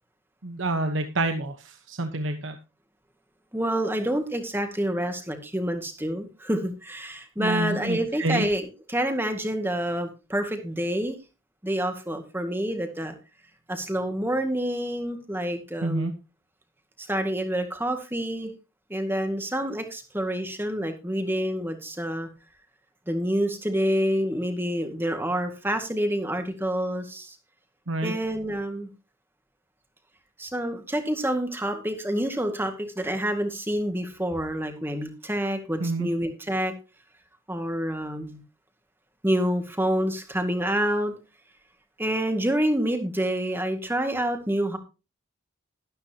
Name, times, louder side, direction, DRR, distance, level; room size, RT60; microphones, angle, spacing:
voice 1, 0.4-2.5 7.4-8.5 15.8-16.1 27.9-28.1 35.8-36.1, right 2 dB, 70° right, 7 dB, 1.2 m, -28 dB
voice 2, 3.5-11.2 11.6-13.1 13.7-16.1 17.0-18.5 18.9-22.3 23.1-27.3 28.0-28.9 30.4-36.7 37.5-38.4 39.2-41.1 42.0-44.8, equal, 10° right, 6 dB, 2.0 m, -27 dB
13.0 x 12.5 x 2.9 m, 0.31 s
head